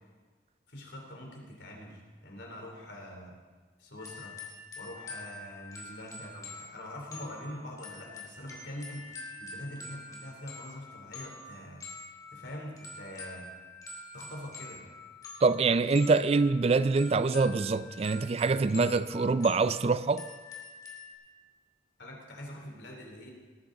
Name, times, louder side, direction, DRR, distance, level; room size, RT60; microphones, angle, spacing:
voice 1, 0.7-3.3 3.8-4.3 4.8-13.5 14.1-14.8 22.0-23.3, left 1 dB, 90° left, 3.2 m, -44 dB
sound 1, 4.0-21.1, left 2 dB, 20° left, 2.1 m, -46 dB
voice 2, 15.4-20.2, right 4 dB, 35° right, 0.3 m, -25 dB
18.5 x 10.0 x 3.8 m
head